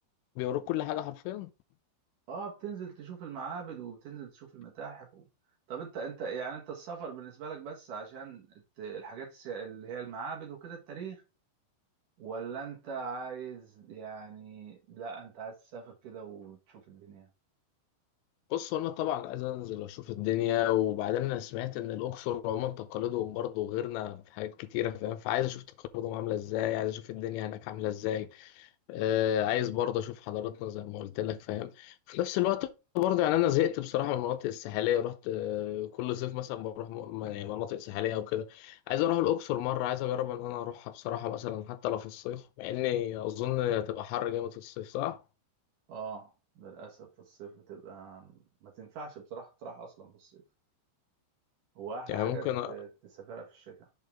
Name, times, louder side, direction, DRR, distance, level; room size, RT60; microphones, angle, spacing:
voice 1, 0.4-1.5 18.5-25.6 25.9-32.7 33.0-45.2 52.1-52.8, left 12 dB, 85° left, 3.3 m, -31 dB
voice 2, 2.3-5.3 5.7-8.5 8.8-11.2 12.2-17.3 45.9-48.3 48.6-50.4 51.8-53.8, right 5 dB, 65° right, 2.1 m, -41 dB
7.5 x 5.3 x 3.6 m
omnidirectional pair, 5.7 m